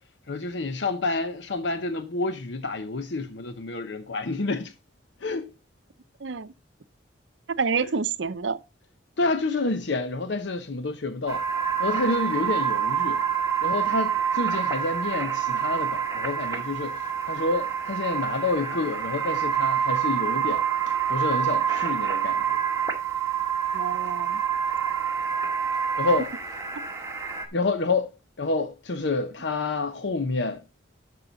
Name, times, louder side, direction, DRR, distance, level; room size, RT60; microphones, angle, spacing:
voice 1, 0.3-4.7 5.2-5.5 9.2-11.4 11.8-13.2 13.6-17.0 17.2-20.6 21.1-22.4 26.0-26.3 27.5-28.1 28.4-30.6, left 3 dB, 70° left, 0.8 m, -28 dB
voice 2, 7.5-8.6 23.7-24.4, right 5 dB, 75° right, 0.7 m, -28 dB
sound 1, 11.3-27.5, right 8 dB, 15° right, 1.8 m, -27 dB
11.5 x 6.6 x 3.9 m
head